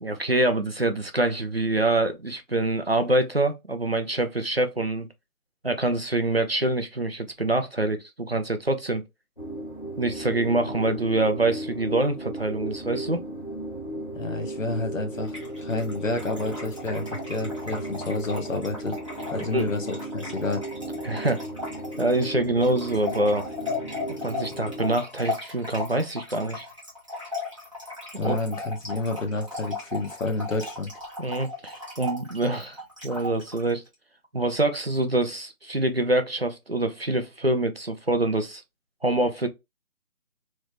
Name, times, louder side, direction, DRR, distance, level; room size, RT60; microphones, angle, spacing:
voice 1, 0.0-5.1 5.6-9.0 10.0-13.2 19.4-19.7 21.0-21.4 22.0-23.4 24.2-26.7 28.2-28.3 31.2-32.8 33.0-33.8 34.3-38.6 39.0-39.5, right 2 dB, 45° right, 0.5 m, -25 dB
sound 1, 9.4-25.0, right 1 dB, 35° left, 0.6 m, -35 dB
voice 2, 14.1-19.0 19.3-20.6 28.2-30.9, left 2 dB, 60° left, 1.0 m, -29 dB
Trickle dribble / Fill (with liquid), 15.2-33.7, left 3 dB, 20° right, 0.9 m, -37 dB
3.1 x 2.5 x 3.3 m
figure-of-eight pair, 175°, 44 cm